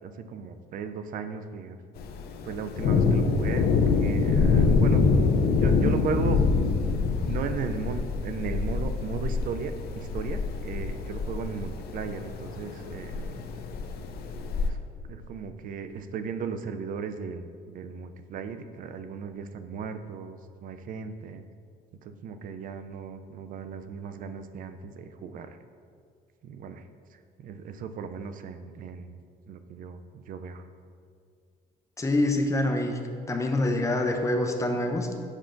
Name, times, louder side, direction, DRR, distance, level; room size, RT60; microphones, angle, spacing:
voice 1, 0.0-1.8 2.5-5.0 5.3-6.4 7.2-13.4 14.6-14.8 15.1-21.4 22.0-25.6 26.4-26.8 27.4-29.2 29.5-30.0 30.3-30.7, right 6 dB, 55° right, 9 dB, 0.4 m, -36 dB
Thunder, 2.0-14.7, left 4 dB, 65° left, 0.6 m, -25 dB
voice 2, 32.0-33.0 33.3-35.2, left 1 dB, 20° left, 4 dB, 0.6 m, -26 dB
7.3 x 5.5 x 2.6 m, 2.2 s
cardioid pair, 110°, 17 cm